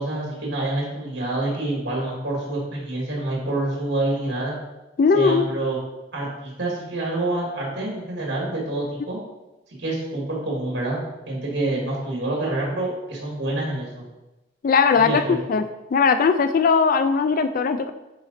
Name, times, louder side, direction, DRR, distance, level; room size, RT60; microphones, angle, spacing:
voice 1, 0.0-4.5 5.1-5.8 6.1-9.2 9.8-14.0 14.9-15.4, right 2 dB, 80° right, -2 dB, 2.1 m, -27 dB
voice 2, 5.0-5.5 14.6-15.6 15.9-17.9, left 5 dB, 50° left, 9 dB, 0.3 m, -19 dB
9.3 x 3.9 x 4.1 m, 1.0 s
head